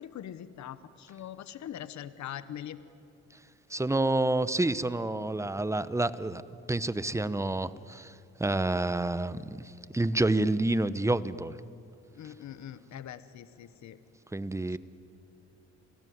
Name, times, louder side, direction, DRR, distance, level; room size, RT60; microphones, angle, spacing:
voice 1, 0.0-2.8 12.1-14.0 14.7-14.8, left 10 dB, 65° left, 14 dB, 1.1 m, -42 dB
voice 2, 3.7-6.4 6.7-8.1 8.4-11.6 14.3-14.8, right 2 dB, 10° right, 15 dB, 0.9 m, -28 dB
28.5 x 19.0 x 9.5 m, 2.6 s
cardioid pair, 90°, 30 cm